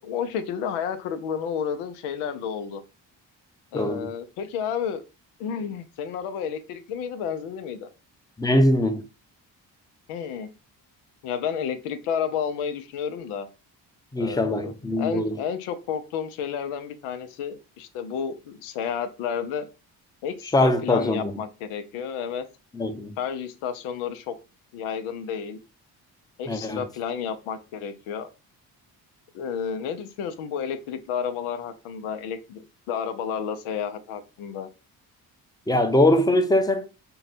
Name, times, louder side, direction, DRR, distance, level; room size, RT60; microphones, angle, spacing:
voice 1, 0.0-2.8 3.7-5.0 5.4-7.9 10.1-10.5 11.2-13.5 14.2-19.7 20.2-22.5 23.2-24.3 24.7-25.6 26.4-28.3 29.3-34.7, left 7 dB, 85° left, 0.7 m, -31 dB
voice 2, 3.7-4.1 8.4-9.0 14.1-15.4 20.5-21.4 22.7-23.2 26.5-26.9 35.7-36.9, left 1 dB, 10° left, 0.7 m, -22 dB
3.8 x 2.3 x 4.1 m
supercardioid pair, 50°, 48 cm